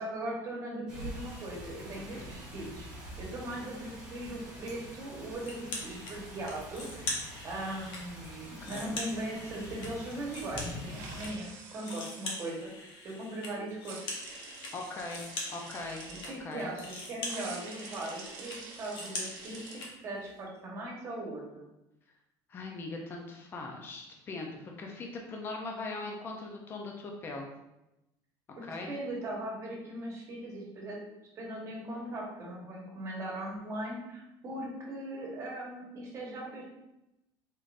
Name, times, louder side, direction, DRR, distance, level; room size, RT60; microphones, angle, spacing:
voice 1, 0.0-2.9 3.2-7.1 7.4-14.1 16.2-19.6 20.0-21.7 28.6-31.0 31.3-36.6, right 1 dB, 30° right, -3 dB, 1.1 m, -39 dB
sound 1, 0.9-11.3, equal, 10° right, 1.2 m, -45 dB
sound 2, 5.4-6.1 6.5-8.0 8.4-11.3 11.6-19.9, left 2 dB, 60° left, 1.0 m, -42 dB
voice 2, 8.6-9.0 14.7-15.2 15.5-16.1 16.4-16.7 22.5-27.5 28.6-28.9, left 3 dB, 25° left, 1 dB, 0.5 m, -40 dB
sound 3, 10.9-12.5 13.9-16.3 17.3-19.8, right 4 dB, 90° right, 0.8 m, -47 dB
4.0 x 3.6 x 2.5 m, 0.91 s
cardioid pair, 160°, 9 cm